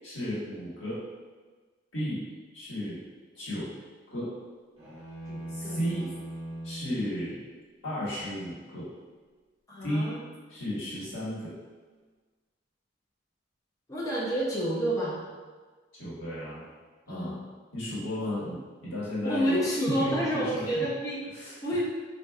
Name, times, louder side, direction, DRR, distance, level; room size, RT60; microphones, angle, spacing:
voice 1, 0.0-1.0 1.9-2.2 2.5-3.0 3.3-3.7 4.1-4.3 5.5-6.1 6.6-7.4 7.8-8.9 9.8-10.1 10.5-11.5 15.9-16.6 17.1-17.4 17.7-20.9 21.3-21.6, equal, 90° left, -9 dB, 1.4 m, -34 dB
sound 1, 4.8-7.0, right 1 dB, 25° right, 1.3 m, -39 dB
voice 2, 5.3-6.0 9.7-10.2 13.9-15.2 17.1-17.3 18.2-18.4 19.2-21.2 21.6-21.8, equal, 20° left, -6 dB, 0.6 m, -29 dB
4.4 x 2.6 x 2.3 m, 1.4 s
head